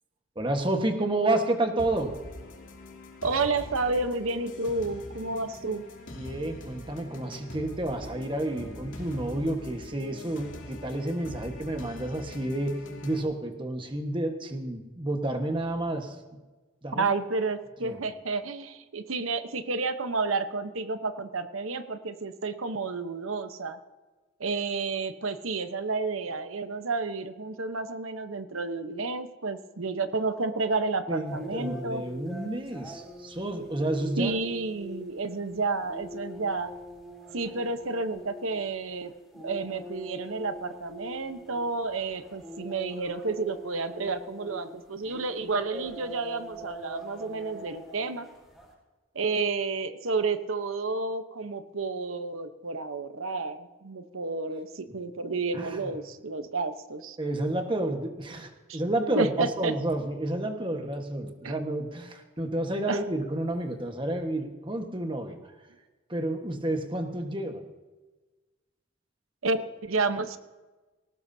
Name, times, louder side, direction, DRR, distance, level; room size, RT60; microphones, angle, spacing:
voice 1, 0.3-2.1 6.1-16.1 16.8-17.1 17.8-18.0 31.1-34.3 55.5-55.8 57.2-65.4 66.1-67.6, right 1 dB, 25° right, 4 dB, 1.4 m, -30 dB
sound 1, 1.8-13.2, left 1 dB, 70° left, 2.9 m, -43 dB
voice 2, 3.2-5.8 16.9-23.8 24.4-32.0 34.2-36.7 37.3-48.3 49.1-57.2 58.7-58.8 59.1-59.7 61.4-61.5 62.9-63.0 69.4-70.4, right 3 dB, 85° right, 10 dB, 1.0 m, -31 dB
sound 2, 31.2-48.7, equal, ahead, 4.4 m, -44 dB
19.5 x 18.0 x 2.8 m, 1.2 s
head